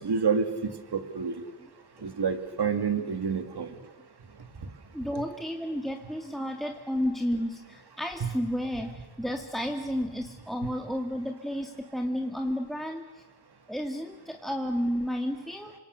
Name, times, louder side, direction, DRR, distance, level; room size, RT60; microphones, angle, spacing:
voice 1, 0.0-1.4 2.0-3.8 8.2-8.3 10.6-10.7, right 6 dB, 60° right, 7 dB, 2.7 m, -28 dB
voice 2, 4.9-13.1 13.7-15.7, equal, ahead, 2 dB, 1.8 m, -32 dB
28.5 x 26.0 x 6.7 m, 1.3 s
wide cardioid pair, 90°, 45 cm